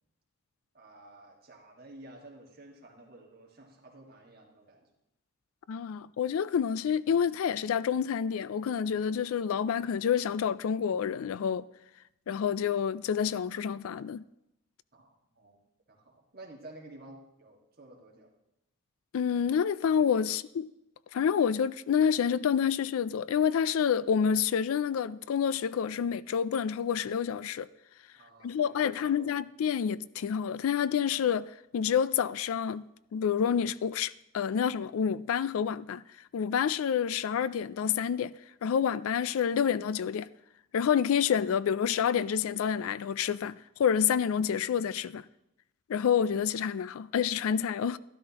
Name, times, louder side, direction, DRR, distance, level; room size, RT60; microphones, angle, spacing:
voice 1, 0.7-4.9 14.9-15.6 15.9-18.3 20.3-20.4 28.2-29.3, right 2 dB, 45° right, 1.8 m, -52 dB
voice 2, 5.7-11.7 12.3-14.2 19.1-20.7 21.1-27.7 28.4-32.9 33.1-36.0 36.3-38.3 38.6-40.3 40.7-45.3 45.9-48.0, left 7 dB, 80° left, 0.3 m, -28 dB
12.5 x 12.5 x 2.9 m
head